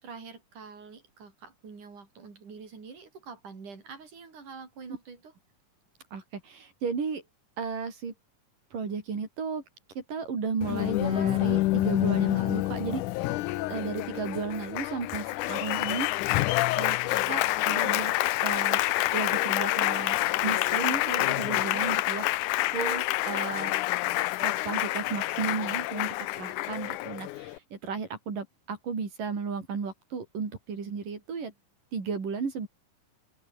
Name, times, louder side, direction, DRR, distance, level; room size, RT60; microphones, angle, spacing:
voice 1, 0.0-5.3 17.1-17.4, right 5 dB, 70° right, 7.0 m, -46 dB
voice 2, 6.1-7.2 7.6-8.1 8.7-9.6 10.0-13.0 13.7-16.1 16.8-17.0 17.3-18.1 18.4-18.9 19.1-23.7 24.4-31.5 31.9-32.7, right 5 dB, 90° right, 6.4 m, -34 dB
Applause, 10.6-27.6, left 18 dB, 80° left, 2.1 m, -27 dB
open air
omnidirectional pair, 3.7 m